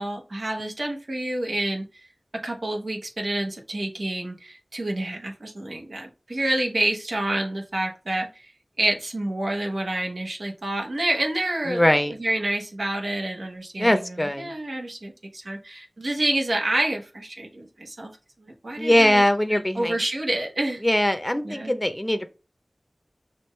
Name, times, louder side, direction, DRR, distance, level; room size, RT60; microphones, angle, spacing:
voice 1, 0.0-1.9 2.4-8.5 8.8-11.9 12.2-18.1 18.4-19.2 19.5-20.8 21.4-21.7, right 1 dB, 80° right, 1 dB, 1.2 m, -28 dB
voice 2, 11.7-12.1 13.8-14.5 18.8-20.0 20.8-22.3, left 1 dB, 15° left, 8 dB, 0.7 m, -21 dB
6.1 x 2.6 x 3.2 m, 0.32 s
wide cardioid pair, 55°, 0 cm